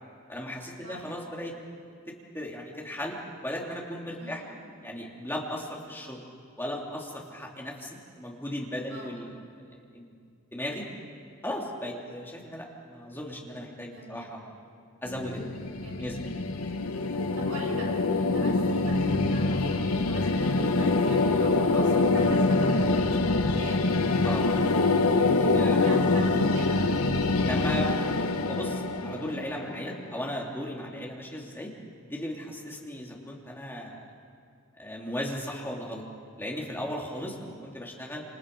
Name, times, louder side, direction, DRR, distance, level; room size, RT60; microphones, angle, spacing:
voice 1, 0.3-1.5 2.3-3.2 3.4-4.4 4.8-6.2 6.6-9.3 9.6-10.1 10.5-10.9 11.4-14.5 15.0-15.7 16.0-16.3 24.2-24.4 25.4-25.9 27.4-27.9 28.4-31.7 32.0-34.0 34.8-36.0 36.4-38.2, left 1 dB, 10° left, -2 dB, 3.0 m, -36 dB
voice 2, 4.2-4.6 8.9-9.1 13.9-14.3 15.8-16.5 17.4-23.9 25.8-27.0, right 1 dB, 65° right, -2 dB, 7.1 m, -43 dB
sound 1, 15.1-30.1, left 3 dB, 80° left, 1.2 m, -25 dB
28.0 x 27.5 x 5.4 m, 2.3 s
head